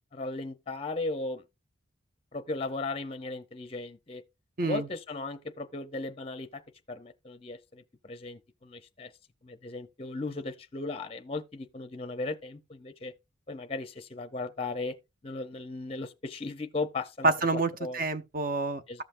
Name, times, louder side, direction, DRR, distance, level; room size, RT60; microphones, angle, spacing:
voice 1, 0.1-1.4 2.3-4.2 4.6-6.6 6.9-9.1 9.4-13.1 13.5-15.0 15.2-17.3 17.8-18.1 18.9-19.0, left 3 dB, 30° left, 0.5 m, -36 dB
voice 2, 17.2-19.0, right 3 dB, 45° right, 0.7 m, -28 dB
14.5 x 5.6 x 2.5 m
head